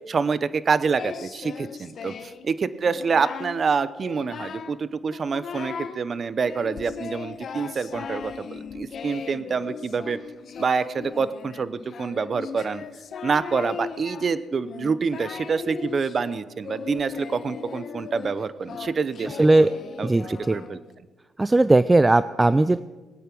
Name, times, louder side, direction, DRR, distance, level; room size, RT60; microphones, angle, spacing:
voice 1, 0.1-10.2 10.6-12.8 13.2-19.5 20.0-20.8, right 5 dB, 45° right, 16 dB, 0.8 m, -27 dB
Singing, 1.0-2.5 2.8-3.6 4.0-4.8 5.1-6.0 6.4-20.9, left 6 dB, 55° left, 1.0 m, -38 dB
voice 2, 19.4-19.7 20.0-20.5 21.4-22.8, right 2 dB, 15° right, 14 dB, 0.4 m, -18 dB
21.0 x 9.3 x 6.0 m, 1.2 s
cardioid pair, 90°, 0 cm